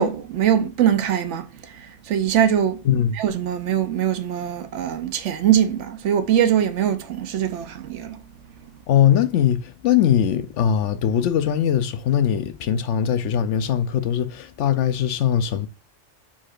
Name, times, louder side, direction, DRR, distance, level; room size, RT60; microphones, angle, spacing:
voice 1, 0.0-2.8 3.2-8.2, right 9 dB, 75° right, 1.0 m, -22 dB
voice 2, 2.8-3.2 8.9-15.7, left 9 dB, 75° left, 0.9 m, -21 dB
4.7 x 4.2 x 2.4 m
omnidirectional pair, 1.2 m